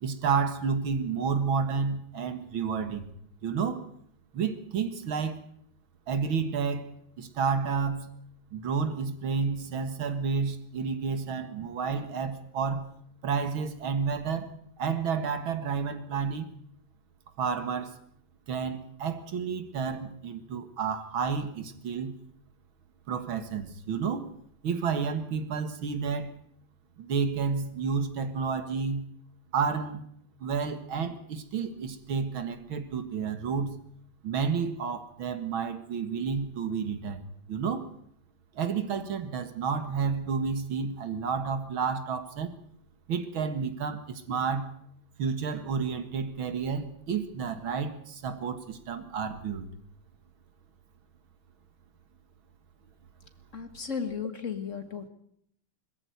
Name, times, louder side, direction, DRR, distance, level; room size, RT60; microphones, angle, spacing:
voice 1, 0.0-3.1 3.4-3.9 4.3-5.4 6.1-8.1 8.5-12.9 13.2-14.5 14.8-16.5 17.4-17.9 18.5-22.1 23.1-24.3 24.6-26.4 27.0-29.0 29.5-30.0 30.4-33.7 34.2-37.2 37.5-37.9 38.6-42.5 43.1-44.7 45.2-49.7, right 6 dB, 80° right, 10 dB, 2.5 m, -30 dB
voice 2, 53.5-55.1, left 6 dB, 40° left, 9 dB, 1.9 m, -35 dB
21.5 x 14.5 x 9.3 m, 0.69 s
omnidirectional pair, 2.2 m